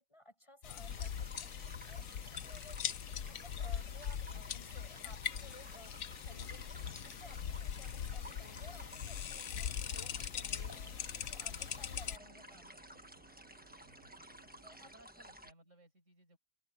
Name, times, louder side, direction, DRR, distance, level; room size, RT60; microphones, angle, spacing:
voice 1, 0.0-6.0 6.2-13.1 14.6-14.9, left 1 dB, 20° left, 6.1 m, -58 dB
sound 1, 0.6-12.2, left 9 dB, 65° left, 1.2 m, -41 dB
sound 2, 0.9-15.5, right 1 dB, 5° right, 1.2 m, -55 dB
sound 3, 6.0-14.9, right 4 dB, 70° right, 5.0 m, -64 dB
voice 2, 13.8-14.2 14.8-16.4, right 1 dB, 55° right, 7.1 m, -63 dB
open air
omnidirectional pair, 1.5 m